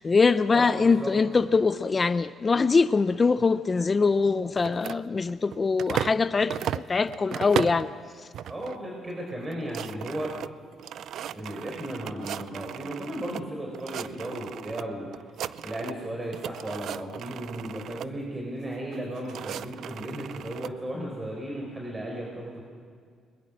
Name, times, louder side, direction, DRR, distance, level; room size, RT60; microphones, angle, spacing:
voice 1, 0.0-7.9, left 4 dB, 30° left, 0.6 m, -23 dB
voice 2, 0.5-1.5 8.5-10.3 11.3-15.2 15.6-22.6, right 1 dB, 25° right, 4.5 m, -35 dB
sound 1, 4.6-6.2 6.5-7.9 8.3-8.8 9.1-9.2 9.4-13.4 13.7-14.8 15.1-16.1 16.3-18.1 18.9-20.7, right 10 dB, 70° right, 0.4 m, -36 dB
21.5 x 21.0 x 6.3 m
cardioid pair, 90°, 0 cm